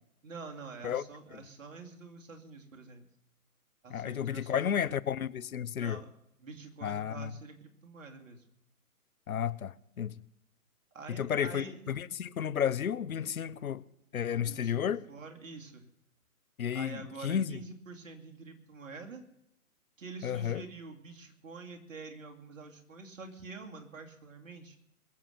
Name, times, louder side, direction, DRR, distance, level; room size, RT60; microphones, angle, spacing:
voice 1, 0.2-3.1 3.8-4.8 5.7-6.1 6.4-8.4 10.9-11.8 14.5-15.8 16.7-19.2 20.0-24.8, right 4 dB, 60° right, 2.7 m, -47 dB
voice 2, 3.9-6.0 6.8-7.3 9.3-10.1 11.1-13.8 14.1-15.0 16.6-17.6 20.2-20.6, left 8 dB, 70° left, 0.8 m, -32 dB
21.5 x 7.4 x 6.6 m
figure-of-eight pair, 140°, 44 cm